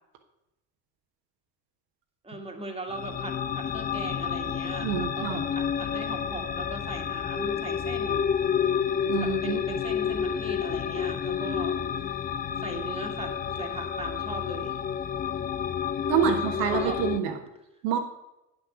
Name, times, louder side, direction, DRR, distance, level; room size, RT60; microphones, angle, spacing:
voice 1, 2.2-8.3 9.2-11.8 12.6-14.8 16.2-16.4 16.7-17.0, right 2 dB, 10° right, 3 dB, 1.9 m, -38 dB
sound 1, 2.9-17.2, left 8 dB, 20° left, 0.4 m, -30 dB
voice 2, 4.8-5.4 9.0-9.6 16.1-17.3 17.8-18.0, right 8 dB, 70° right, 3 dB, 1.3 m, -27 dB
9.3 x 6.4 x 6.1 m, 0.91 s
figure-of-eight pair, 50°, 48 cm